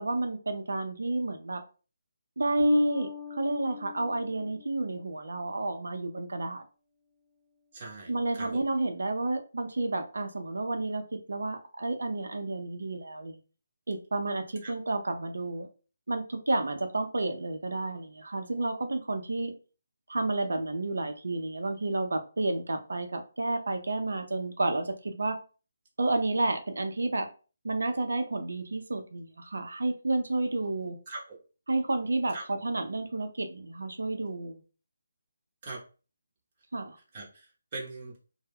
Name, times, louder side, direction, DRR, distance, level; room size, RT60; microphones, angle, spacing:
voice 1, 0.0-1.6 2.4-6.6 8.1-13.4 13.9-15.7 16.1-19.5 20.1-25.4 26.0-27.3 27.6-31.0 31.7-34.6 36.7-37.0, right 2 dB, 75° right, 6 dB, 0.5 m, -30 dB
Bass guitar, 2.6-5.2, left 6 dB, 30° left, 0.7 m, -40 dB
voice 2, 7.7-8.6 14.6-14.7 31.1-31.4 32.3-32.4 35.6-35.8 37.1-38.2, right 3 dB, 35° right, -2 dB, 0.9 m, -41 dB
2.1 x 2.1 x 3.4 m, 0.35 s
figure-of-eight pair, 155°, 0 cm